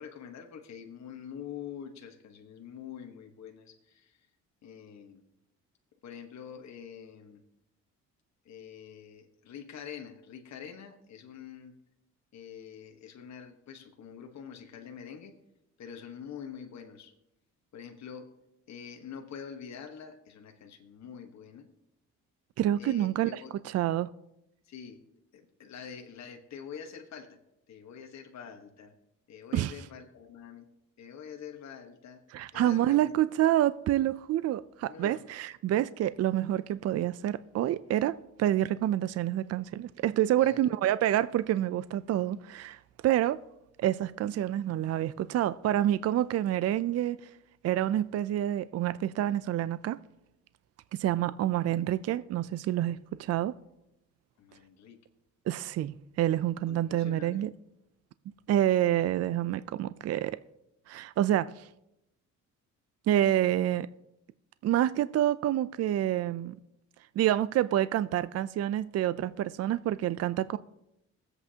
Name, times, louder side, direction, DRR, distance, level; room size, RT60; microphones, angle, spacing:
voice 1, 0.0-4.3 4.6-5.2 6.0-7.4 8.4-11.7 12.3-15.4 15.8-17.1 17.7-18.3 18.7-21.7 22.8-23.6 24.6-25.0 25.3-27.4 27.7-28.9 29.3-30.7 31.0-32.2 32.5-33.1 34.9-35.2 40.4-40.7 51.7-51.8 54.4-55.0 56.7-57.4, left 7 dB, 65° left, 1.3 m, -45 dB
voice 2, 22.6-24.1 29.5-29.7 32.3-43.4 43.8-47.4 47.6-50.0 50.9-53.5 55.5-57.5 58.5-60.4 60.9-61.7 63.1-63.9 64.6-66.6 67.2-70.6, right 12 dB, 55° right, 0.4 m, -28 dB
22.0 x 8.1 x 2.8 m
cardioid pair, 90°, 30 cm